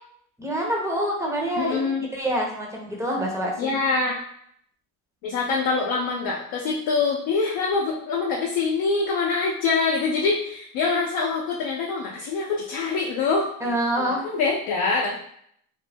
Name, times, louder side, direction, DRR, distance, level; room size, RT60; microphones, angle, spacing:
voice 1, 0.4-3.7 13.6-14.2, right 1 dB, 5° right, -2 dB, 0.7 m, -26 dB
voice 2, 1.6-2.1 3.6-4.1 5.2-13.5 14.0-15.2, left 4 dB, 55° left, -2 dB, 0.6 m, -24 dB
2.5 x 2.0 x 3.3 m, 0.67 s
supercardioid pair, 100°, 42 cm